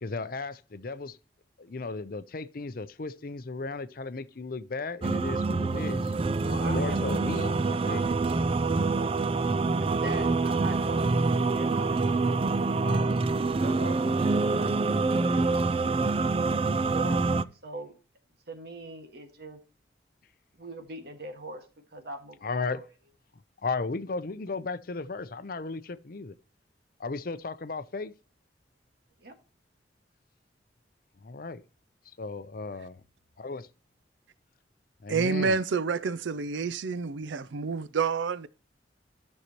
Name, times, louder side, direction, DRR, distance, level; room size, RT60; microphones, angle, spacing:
voice 1, 0.0-1.2 1.6-6.1 6.6-7.5 7.9-8.0 22.4-22.8 23.6-26.3 27.0-28.1 31.2-31.6 32.2-33.0 33.4-33.6 35.0-35.6, left 3 dB, 50° left, 0.6 m, -35 dB
sound 1, 5.0-17.4, right 3 dB, 30° right, 0.4 m, -26 dB
voice 2, 6.3-9.2 9.8-16.2 16.6-18.0 18.5-19.6 20.6-22.9 29.2-29.3, right 2 dB, 60° right, 1.7 m, -42 dB
voice 3, 35.1-38.5, right 5 dB, 90° right, 0.5 m, -28 dB
12.5 x 6.5 x 3.0 m
head